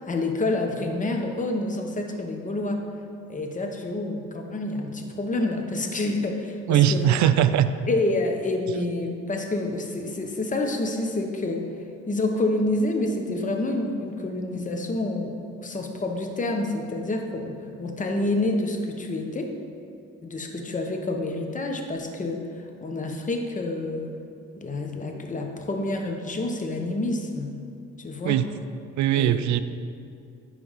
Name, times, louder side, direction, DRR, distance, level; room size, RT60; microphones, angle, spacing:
voice 1, 0.1-2.8 3.3-7.1 7.9-11.7 12.1-19.5 20.2-22.4 22.8-24.1 24.6-27.6 28.0-28.4 29.1-29.4, left 2 dB, 25° left, 3 dB, 0.9 m, -28 dB
voice 2, 6.7-7.7 28.2-28.5 29.0-29.6, right 11 dB, 70° right, 13 dB, 0.5 m, -20 dB
10.0 x 3.5 x 5.6 m, 2.4 s
cardioid pair, 90°, 30 cm